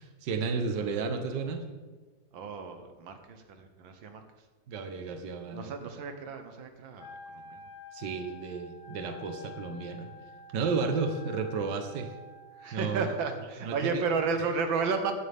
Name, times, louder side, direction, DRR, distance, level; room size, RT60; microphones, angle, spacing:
voice 1, 0.0-1.7 4.7-5.7 7.9-10.1 10.5-12.1 12.7-13.1 13.6-14.0, right 5 dB, 70° right, 6 dB, 1.7 m, -32 dB
voice 2, 2.3-4.2 5.5-7.6 12.6-15.1, right 5 dB, 85° right, 6 dB, 1.9 m, -33 dB
Wind instrument woodwind instrument, 7.0-13.1, left 3 dB, 85° left, 3.2 m, -49 dB
16.0 x 11.0 x 3.6 m, 1.3 s
omnidirectional pair, 2.1 m